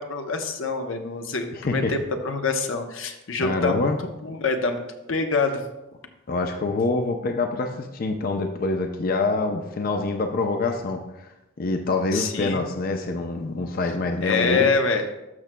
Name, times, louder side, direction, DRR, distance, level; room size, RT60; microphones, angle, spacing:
voice 1, 0.0-3.9 4.2-4.8 5.1-5.6 12.1-12.6 14.2-15.0, left 4 dB, 85° left, 5 dB, 0.8 m, -25 dB
voice 2, 1.5-1.9 3.4-4.0 6.3-11.3 11.6-14.7, left 3 dB, 50° left, 4 dB, 0.5 m, -25 dB
12.5 x 6.0 x 2.2 m, 0.96 s
head